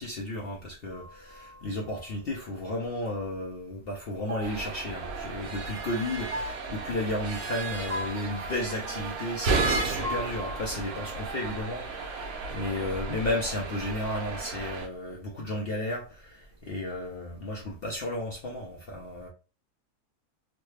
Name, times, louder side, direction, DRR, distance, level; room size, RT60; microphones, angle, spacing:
voice 1, 0.0-19.3, left 1 dB, 55° left, 0.7 m, -33 dB
sound 1, 0.9-2.6 4.3-5.9 6.3-9.7 10.0-12.2, left 1 dB, 45° right, 0.5 m, -42 dB
sound 2, 4.4-14.9, right 3 dB, 80° right, 1.2 m, -33 dB
3.1 x 2.1 x 3.2 m
omnidirectional pair, 1.5 m